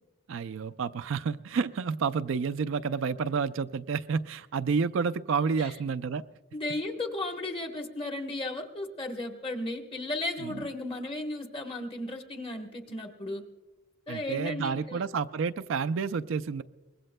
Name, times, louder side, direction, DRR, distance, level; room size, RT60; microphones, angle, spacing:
voice 1, 0.3-6.2 10.4-10.6 14.1-16.6, right 5 dB, 70° right, 12 dB, 0.4 m, -30 dB
voice 2, 6.5-13.4 14.1-15.0, left 2 dB, 25° left, 3 dB, 1.2 m, -35 dB
23.5 x 20.5 x 2.2 m, 1.2 s
head